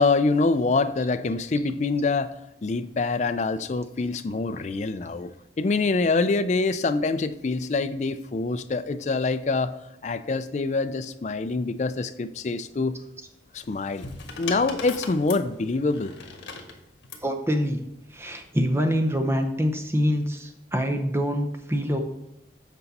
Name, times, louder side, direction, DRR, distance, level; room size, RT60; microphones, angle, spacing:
voice 1, 0.0-2.4 2.6-5.3 5.6-9.7 10.0-13.0 13.5-14.1 14.4-16.1, left 3 dB, 40° left, 11 dB, 0.4 m, -25 dB
sound 1, 13.6-17.3 18.3-18.7, left 4 dB, 85° left, 1.4 m, -39 dB
voice 2, 17.2-17.8 18.1-22.0, equal, 15° right, 4 dB, 0.7 m, -25 dB
8.2 x 5.2 x 4.1 m, 0.87 s
head